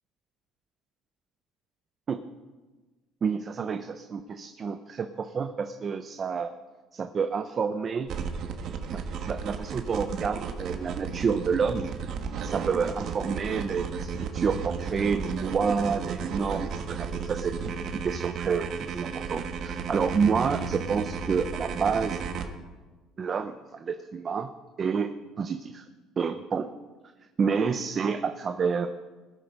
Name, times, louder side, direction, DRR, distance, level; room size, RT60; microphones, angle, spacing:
voice 1, 3.2-6.5 6.9-8.1 8.9-9.0 9.3-11.9 12.4-17.8 18.0-22.2 23.2-24.5 24.8-25.8 26.2-26.7 27.4-28.9, right 5 dB, 30° right, 8 dB, 0.6 m, -29 dB
sound 1, 8.1-22.4, right 6 dB, 50° right, 1.3 m, -34 dB
20.5 x 7.9 x 5.3 m, 1.2 s
cardioid pair, 150°, 0 cm